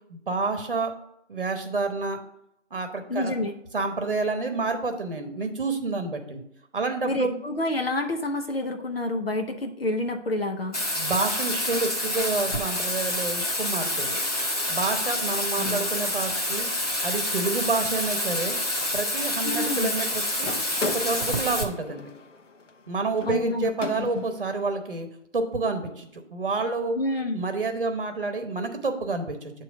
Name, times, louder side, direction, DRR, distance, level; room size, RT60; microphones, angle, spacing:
voice 1, 0.1-0.9 1.3-2.2 2.7-3.3 3.7-6.4 6.7-7.4 11.0-14.2 14.7-18.6 18.9-20.5 20.8-22.1 22.9-25.1 25.3-27.0 27.3-29.5, right 3 dB, 50° right, 6 dB, 1.0 m, -29 dB
voice 2, 3.1-3.5 7.0-10.8 15.6-15.8 19.4-19.9 23.3-23.7 24.0-24.2 26.9-27.4, left 2 dB, 55° left, 4 dB, 0.7 m, -28 dB
Bathtub (filling or washing), 10.7-21.6, left 1 dB, 35° left, 0.9 m, -28 dB
sound 1, 20.4-24.5, left 3 dB, 85° left, 1.0 m, -37 dB
7.5 x 3.0 x 5.9 m, 0.77 s
figure-of-eight pair, 175°, 36 cm